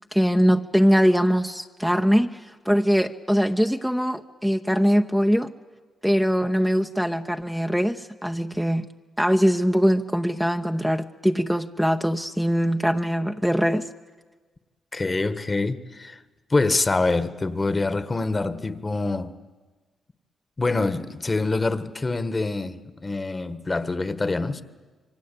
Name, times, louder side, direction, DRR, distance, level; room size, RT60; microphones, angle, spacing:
voice 1, 0.1-5.5 6.0-8.9 9.2-13.9, equal, 5° right, 0.9 m, -22 dB
voice 2, 14.9-16.2 16.5-19.3 20.6-24.6, left 3 dB, 30° left, 1.4 m, -25 dB
27.0 x 23.5 x 8.5 m
cardioid pair, 65°, 0 cm